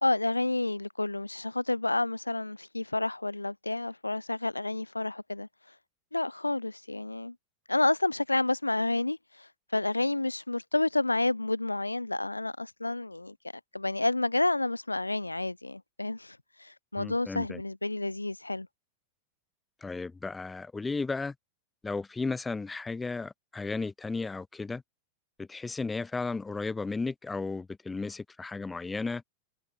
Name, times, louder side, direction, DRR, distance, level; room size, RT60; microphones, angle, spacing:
voice 1, 0.0-5.5 6.1-7.3 7.7-13.3 13.7-18.7, left 2 dB, 85° left, 1.5 m, -30 dB
voice 2, 17.0-17.6 19.8-21.3 21.8-24.8 25.4-29.2, left 3 dB, 10° left, 2.1 m, -34 dB
figure-of-eight pair, 90°, 0 cm